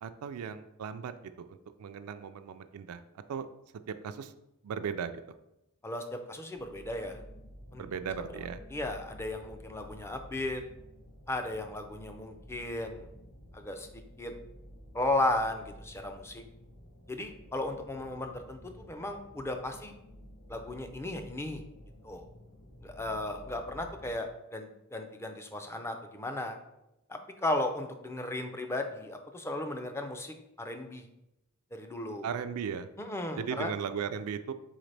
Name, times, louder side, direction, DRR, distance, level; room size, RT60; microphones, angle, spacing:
voice 1, 0.0-3.0 3.3-3.5 3.9-4.3 4.6-5.2 7.8-8.6 32.2-32.9 33.4-34.5, right 7 dB, 80° right, 10 dB, 0.3 m, -37 dB
voice 2, 5.8-7.2 7.7-7.9 8.7-10.6 11.3-13.0 13.5-13.9 14.2-14.3 14.9-16.4 17.1-19.9 20.5-21.6 22.0-22.3 22.8-26.6 27.1-31.0 31.7-32.3 33.0-33.7, left 2 dB, 10° left, 5 dB, 0.4 m, -35 dB
sound 1, 6.5-24.1, equal, 80° left, 1.5 m, -52 dB
4.0 x 4.0 x 3.2 m, 0.87 s
head